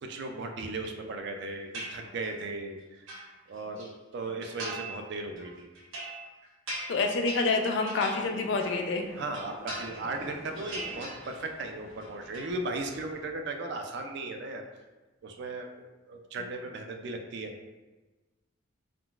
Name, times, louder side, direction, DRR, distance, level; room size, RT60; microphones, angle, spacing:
voice 1, 0.0-3.0 3.5-5.7 9.1-14.6 15.2-17.6, right 2 dB, 55° right, 4 dB, 0.3 m, -37 dB
sound 1, 1.7-2.4 2.8-3.9 4.4-5.0 5.4-8.9 9.2-10.2 10.5-11.6 11.9-12.5, right 2 dB, 80° right, 0.9 m, -41 dB
voice 2, 6.9-9.1, left 3 dB, 60° left, 4 dB, 0.4 m, -27 dB
sound 2, 8.1-13.2, left 1 dB, 30° right, 0.9 m, -49 dB
3.7 x 2.4 x 2.3 m, 1.2 s
head